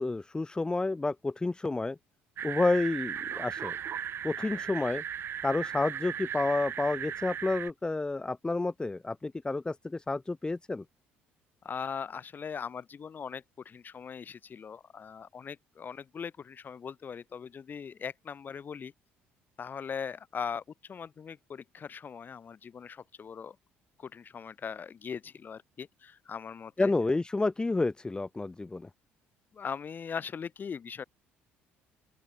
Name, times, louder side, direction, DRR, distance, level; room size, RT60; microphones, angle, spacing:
voice 1, 0.0-2.0 2.4-3.8 4.2-5.0 5.4-10.8 26.8-28.9, left 3 dB, 15° left, 2.4 m, -30 dB
sound 1, 2.4-7.7, right 9 dB, 55° right, 2.9 m, -37 dB
voice 2, 11.6-18.9 19.6-23.6 24.0-26.9 29.5-31.0, left 6 dB, 40° left, 7.7 m, -40 dB
open air
supercardioid pair, 80°, 5 cm